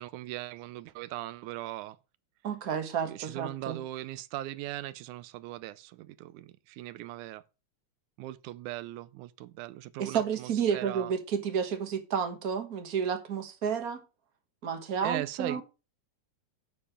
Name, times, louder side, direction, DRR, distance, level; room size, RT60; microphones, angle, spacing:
voice 1, 0.0-2.0 3.1-7.4 8.2-11.1 15.0-15.6, right 15 dB, 85° right, 2.1 m, -39 dB
voice 2, 2.4-3.8 10.0-14.0 14.6-15.6, right 7 dB, 45° right, 1.2 m, -31 dB
9.5 x 6.8 x 5.0 m
omnidirectional pair, 3.4 m